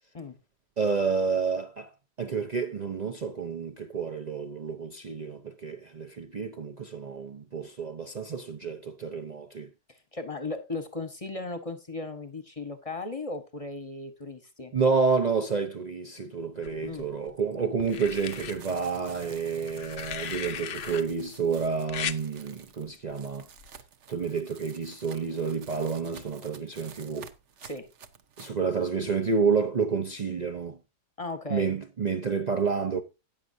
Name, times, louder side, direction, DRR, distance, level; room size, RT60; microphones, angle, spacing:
voice 1, 0.8-1.9 2.2-9.7 14.7-23.5 24.1-27.3 28.4-30.8 31.5-33.0, right 5 dB, 85° right, 0.3 m, -29 dB
voice 2, 9.9-14.7 16.8-17.1 27.6-27.9 31.2-31.7, left 3 dB, 25° left, 0.8 m, -36 dB
sound 1, 16.6-17.3 17.9-18.5 19.7-21.0 21.9-22.2 23.6-23.8, left 8 dB, 60° left, 0.6 m, -36 dB
sound 2, 17.8-28.6, right 7 dB, 50° right, 1.0 m, -49 dB
14.0 x 9.3 x 2.7 m
omnidirectional pair, 1.8 m